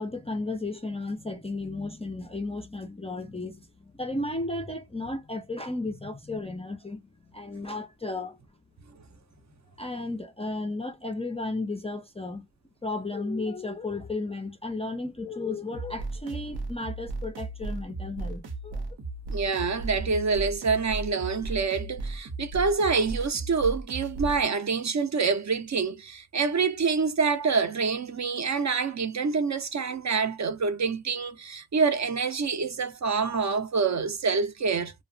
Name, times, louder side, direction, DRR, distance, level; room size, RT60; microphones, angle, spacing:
voice 1, 0.0-8.4 9.8-12.5 12.8-19.0, left 2 dB, 15° left, 0.3 m, -34 dB
sound 1, 15.7-24.4, right 2 dB, 75° right, 0.8 m, -35 dB
voice 2, 19.3-34.9, right 5 dB, 45° right, 0.5 m, -26 dB
2.7 x 2.0 x 2.5 m
wide cardioid pair, 165°, 40 cm